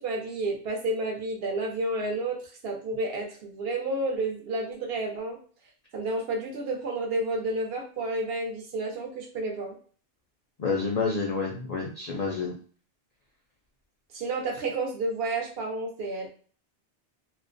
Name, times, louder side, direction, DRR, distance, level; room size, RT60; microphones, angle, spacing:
voice 1, 0.0-2.4 2.6-5.4 5.9-9.8 14.1-16.3, right 2 dB, 65° right, 2 dB, 0.8 m, -30 dB
voice 2, 10.6-12.5, left 4 dB, 60° left, -2 dB, 0.4 m, -29 dB
2.4 x 2.0 x 2.5 m, 0.43 s
omnidirectional pair, 1.2 m